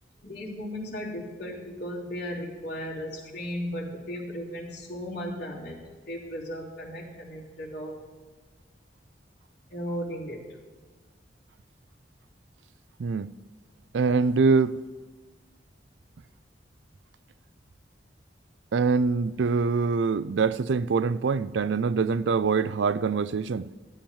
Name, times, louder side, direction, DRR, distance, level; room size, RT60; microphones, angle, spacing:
voice 1, 0.2-8.0 9.7-10.5, equal, 60° left, 3.2 m, -36 dB
voice 2, 13.9-14.8 18.7-23.7, right 4 dB, 80° right, 0.4 m, -24 dB
14.5 x 8.6 x 5.5 m
head